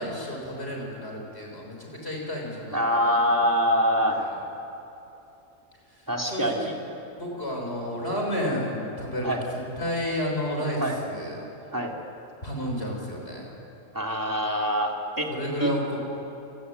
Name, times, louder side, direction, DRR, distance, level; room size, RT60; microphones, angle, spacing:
voice 1, 0.0-3.5 4.1-4.4 5.9-6.7 7.2-11.4 12.4-13.5 15.3-16.0, equal, 40° left, -1 dB, 6.7 m, -32 dB
voice 2, 2.7-4.2 6.1-6.7 9.2-9.4 10.8-11.0 11.7-12.0 13.9-15.3 15.6-15.7, equal, 10° right, 0 dB, 3.2 m, -24 dB
28.0 x 21.0 x 9.8 m, 2.9 s
omnidirectional pair, 1.6 m